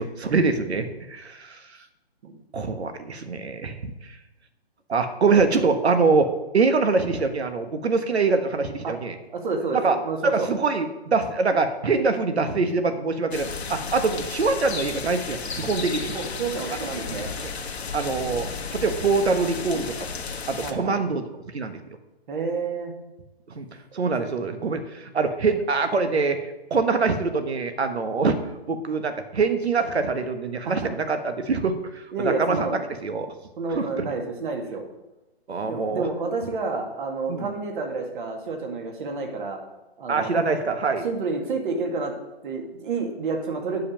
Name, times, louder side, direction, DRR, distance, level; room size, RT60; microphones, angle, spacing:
voice 1, 0.0-1.6 2.5-4.2 4.9-9.1 9.7-10.0 10.2-16.1 17.4-17.5 17.9-20.1 20.5-21.2 21.5-21.8 23.5-23.7 23.9-28.4 28.7-32.7 33.0-33.3 33.7-34.1 35.5-36.0 37.3-37.5 40.1-41.1, right 4 dB, 80° right, 8 dB, 1.4 m, -24 dB
voice 2, 9.3-10.5 16.1-17.3 20.6-21.0 22.3-22.9 23.9-24.3 30.6-30.9 32.1-32.8 33.6-34.8 35.6-39.6 40.0-40.3 41.0-42.1 42.4-43.8, right 4 dB, 50° right, 3 dB, 2.1 m, -29 dB
sound 1, 13.3-20.7, left 5 dB, 75° left, 1.4 m, -33 dB
8.4 x 5.2 x 7.5 m, 1.0 s
hypercardioid pair, 140°, 32 cm